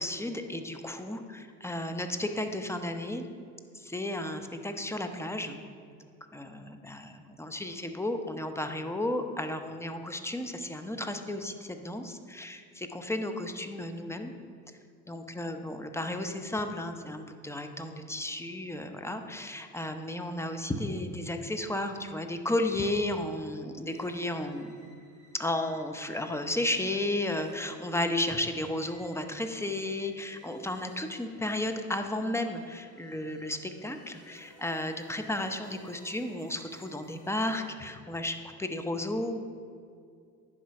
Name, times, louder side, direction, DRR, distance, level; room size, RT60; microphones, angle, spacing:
voice 1, 0.0-3.3 3.7-5.6 6.3-14.3 15.1-24.7 25.3-39.4, left 1 dB, 5° left, 6 dB, 0.7 m, -33 dB
sound 1, 23.9-37.6, equal, 75° left, 2.4 m, -59 dB
10.0 x 5.1 x 5.8 m, 2.3 s
hypercardioid pair, 65°, 46 cm